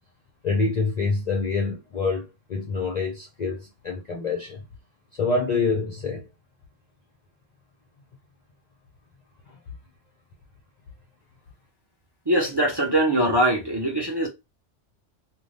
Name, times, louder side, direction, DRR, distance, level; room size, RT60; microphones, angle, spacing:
voice 1, 0.4-4.6 5.1-6.3 9.5-9.6, left 4 dB, 50° left, 0.5 m, -26 dB
voice 2, 12.3-14.3, right 1 dB, 25° right, 0.7 m, -22 dB
2.6 x 2.2 x 3.2 m
omnidirectional pair, 1.3 m